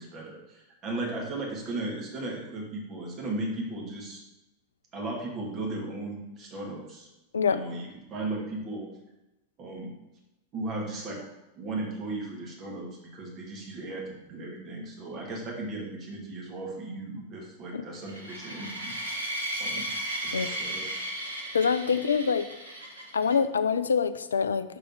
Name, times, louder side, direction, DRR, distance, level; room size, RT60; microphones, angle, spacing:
voice 1, 0.0-4.2 4.9-7.1 7.5-8.9 9.6-9.9 10.5-11.2 11.6-18.9 19.6-19.9 20.2-20.8 21.9-22.0, right 2 dB, 30° right, -2 dB, 2.1 m, -36 dB
sound 1, 18.1-23.3, right 1 dB, 80° right, 1.4 m, -35 dB
voice 2, 21.5-22.5 23.1-24.8, left 6 dB, 70° left, 13 dB, 0.4 m, -25 dB
6.0 x 4.8 x 4.7 m, 0.94 s
figure-of-eight pair, 90°, 0 cm